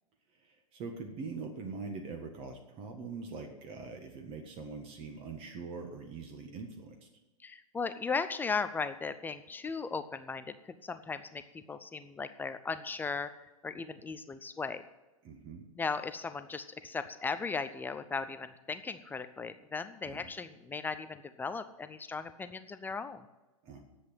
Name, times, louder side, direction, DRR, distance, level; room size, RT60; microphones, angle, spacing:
voice 1, 0.5-7.0 15.2-15.6 20.0-20.3 23.6-23.8, right 4 dB, 30° right, 4 dB, 1.7 m, -43 dB
voice 2, 7.4-14.8 15.8-23.2, left 4 dB, 10° left, 11 dB, 0.6 m, -37 dB
10.5 x 8.2 x 9.4 m, 1.1 s
figure-of-eight pair, 100°, 18 cm